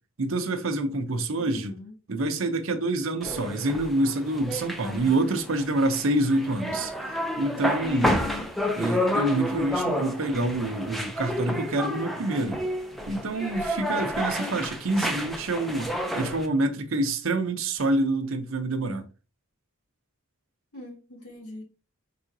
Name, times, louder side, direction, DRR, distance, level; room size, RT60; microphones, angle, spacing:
voice 1, 0.2-1.8 2.1-6.9 7.4-8.2 8.8-12.6 13.1-19.0, right 2 dB, 60° right, 0.7 m, -27 dB
voice 2, 1.4-1.9 8.0-8.5 20.7-21.6, left 1 dB, 85° left, 2.2 m, -41 dB
sound 1, 3.2-16.5, equal, ahead, 0.5 m, -30 dB
4.9 x 3.7 x 2.7 m
head